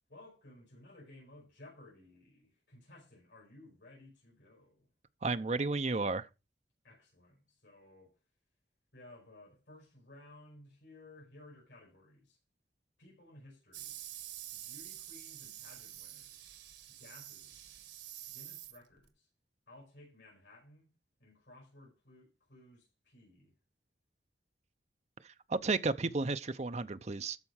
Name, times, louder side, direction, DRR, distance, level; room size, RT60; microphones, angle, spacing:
voice 1, 0.1-4.9 6.8-8.2 8.9-12.4 13.0-14.0 14.5-16.5 16.9-17.7 18.3-19.3 19.7-20.9 21.2-23.5, left 1 dB, 85° left, 5.7 m, -57 dB
voice 2, 5.2-6.3 25.5-27.4, right 3 dB, 40° right, 0.7 m, -32 dB
sound 1, 13.7-19.1, right 12 dB, 80° right, 1.6 m, -48 dB
13.0 x 4.5 x 6.3 m
head